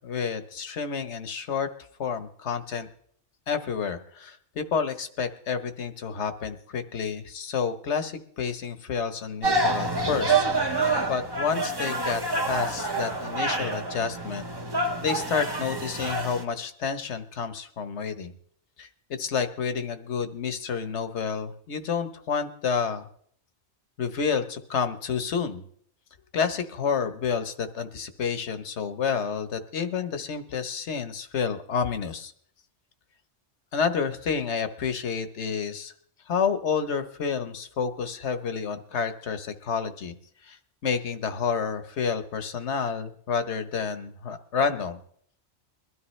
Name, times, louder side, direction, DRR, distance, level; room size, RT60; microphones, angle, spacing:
voice 1, 0.0-1.7 2.0-2.9 3.5-12.2 12.5-14.4 15.0-18.3 18.8-23.1 24.0-25.6 26.3-32.3 33.7-35.9 36.3-40.2 40.4-45.0, left 6 dB, 70° left, 10 dB, 1.3 m, -29 dB
sound 1, 9.4-16.4, right 2 dB, 20° right, 1.0 m, -27 dB
22.0 x 13.0 x 3.2 m, 0.62 s
omnidirectional pair, 1.2 m